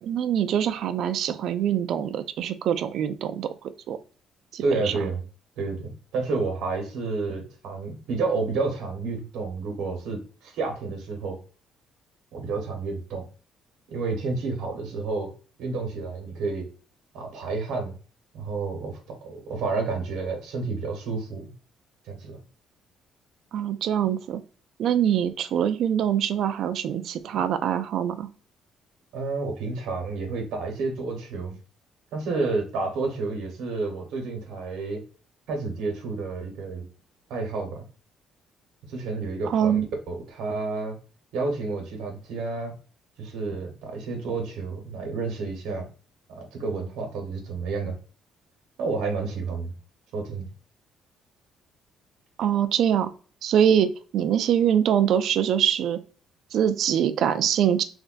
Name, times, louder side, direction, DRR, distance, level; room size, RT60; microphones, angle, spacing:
voice 1, 0.0-4.0 4.5-4.9 23.5-24.4 24.8-28.3 39.4-39.9 52.4-53.1 53.4-56.0 56.5-57.8, right 9 dB, 65° right, 10 dB, 0.3 m, -24 dB
voice 2, 4.6-5.2 5.6-11.4 12.3-13.3 13.9-15.3 15.6-16.7 17.1-18.0 18.3-21.4 22.1-22.4 29.1-31.6 32.1-35.0 35.5-36.8 37.3-37.8 38.9-39.8 40.1-41.0 41.3-42.7 43.2-45.9 46.3-48.0 48.8-49.7 50.1-50.5, right 3 dB, 80° right, 2 dB, 1.1 m, -30 dB
3.4 x 2.2 x 2.4 m, 0.38 s
cardioid pair, 135°, 0 cm